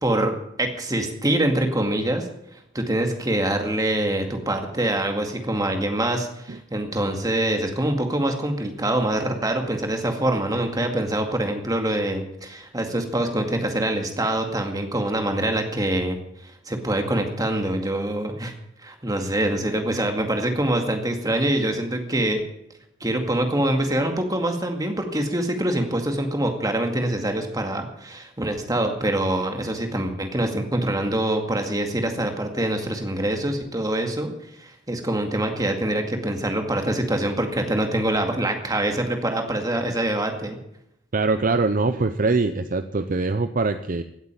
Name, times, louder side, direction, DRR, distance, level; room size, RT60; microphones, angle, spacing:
voice 1, 0.0-0.3 0.6-2.3 2.7-16.2 16.7-18.5 18.8-22.4 23.0-34.3 34.6-40.6, right 1 dB, 20° right, 4 dB, 2.1 m, -25 dB
voice 2, 41.1-44.0, right 3 dB, 45° right, 10 dB, 0.6 m, -23 dB
16.5 x 8.2 x 9.0 m, 0.78 s
head